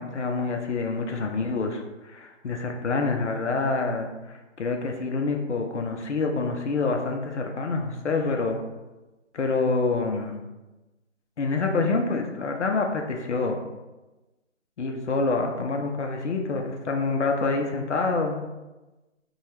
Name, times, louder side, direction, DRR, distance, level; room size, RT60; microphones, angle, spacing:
voice 1, 0.0-8.6 9.3-10.4 11.4-13.6 14.8-18.4, left 3 dB, 65° left, 3 dB, 0.5 m, -27 dB
2.7 x 2.3 x 3.2 m, 1.1 s
figure-of-eight pair, 165°, 37 cm